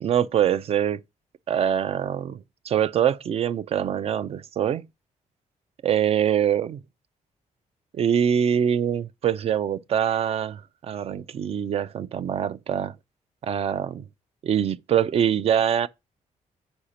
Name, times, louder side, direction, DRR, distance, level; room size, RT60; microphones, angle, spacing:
voice 1, 0.0-1.0 1.5-4.8 5.8-6.8 7.9-12.9 13.4-14.0 14.4-15.9, right 9 dB, 45° right, 0.4 m, -24 dB
4.9 x 4.4 x 5.0 m
cardioid pair, 150°, 14 cm